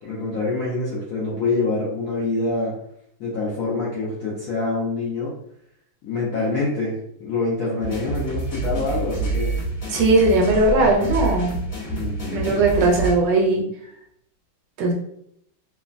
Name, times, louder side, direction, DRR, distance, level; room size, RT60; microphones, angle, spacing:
voice 1, 0.0-2.7 3.2-5.3 6.0-6.9 7.2-9.5 11.9-12.6, left 3 dB, 70° left, -7 dB, 0.8 m, -25 dB
sound 1, 7.8-13.1, right 3 dB, 35° left, 1.2 m, -27 dB
voice 2, 9.9-11.6 12.3-13.6 14.8-14.9, right 2 dB, 75° right, 0 dB, 1.2 m, -18 dB
3.1 x 2.1 x 2.5 m, 0.72 s
omnidirectional pair, 2.1 m